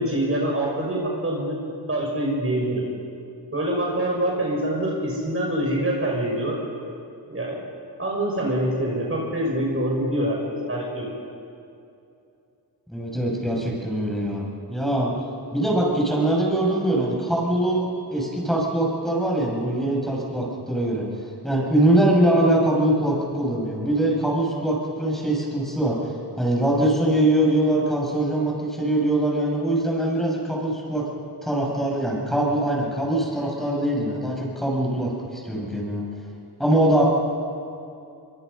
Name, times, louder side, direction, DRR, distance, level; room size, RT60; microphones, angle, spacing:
voice 1, 0.0-1.6 1.9-2.8 3.5-6.6 7.3-7.6 8.0-11.1, right 1 dB, 30° right, -2 dB, 5.8 m, -25 dB
voice 2, 12.9-15.1 15.5-21.1 21.4-26.0 26.4-31.0 31.4-36.0 36.6-37.0, right 1 dB, ahead, -3 dB, 6.8 m, -22 dB
24.5 x 24.0 x 5.4 m, 2.6 s
cardioid pair, 90°, 42 cm